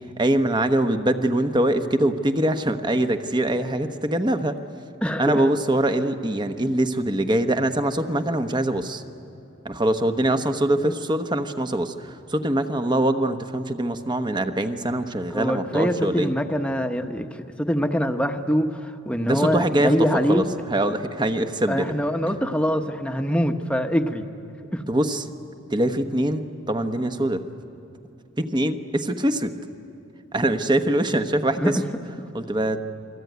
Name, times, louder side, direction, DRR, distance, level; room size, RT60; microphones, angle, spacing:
voice 1, 0.2-4.6 5.2-9.0 9.6-16.3 19.2-21.9 24.9-25.3 25.7-27.4 28.4-29.5 30.3-31.8 32.3-32.8, right 1 dB, 20° right, 8 dB, 1.1 m, -23 dB
voice 2, 5.0-5.4 15.3-17.3 17.6-20.4 21.7-24.3 24.7-24.8 31.6-31.7, equal, 5° left, 6 dB, 1.1 m, -24 dB
29.0 x 22.0 x 9.4 m, 2.8 s
head